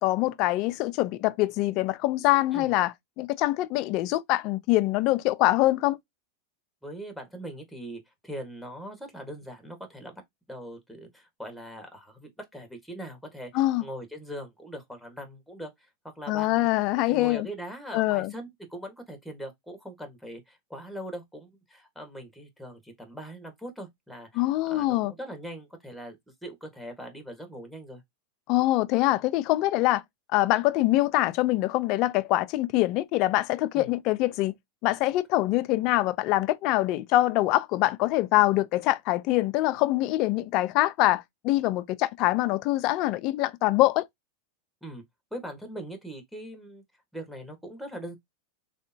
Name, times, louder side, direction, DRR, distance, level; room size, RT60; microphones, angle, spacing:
voice 1, 0.0-6.0 13.5-13.8 16.3-17.5 17.9-18.3 24.3-25.1 28.5-30.0 30.3-34.5 34.8-44.1, left 17 dB, 50° left, 0.5 m, -24 dB
voice 2, 6.8-10.1 10.5-13.5 13.8-15.9 16.1-16.7 17.1-26.2 26.4-28.0 33.7-33.9 44.8-45.0 45.3-46.8 47.1-48.2, right 1 dB, ahead, 1.5 m, -41 dB
3.7 x 3.2 x 2.7 m
supercardioid pair, 125°, 0 cm